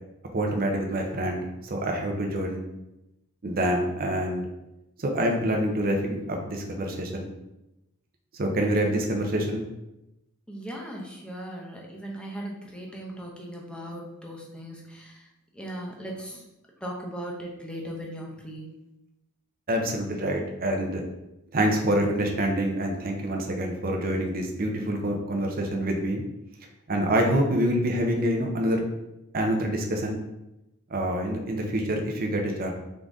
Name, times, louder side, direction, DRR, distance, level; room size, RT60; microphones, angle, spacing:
voice 1, 0.3-2.6 3.4-4.5 5.0-7.3 8.3-9.6 19.7-21.0 21.5-26.2 26.9-28.9 29.3-30.2 30.9-32.7, right 1 dB, 40° right, 1 dB, 0.6 m, -26 dB
voice 2, 10.5-15.3 15.5-16.5 16.8-18.7, right 1 dB, 5° left, -2 dB, 0.7 m, -38 dB
3.8 x 3.7 x 3.5 m, 0.92 s
head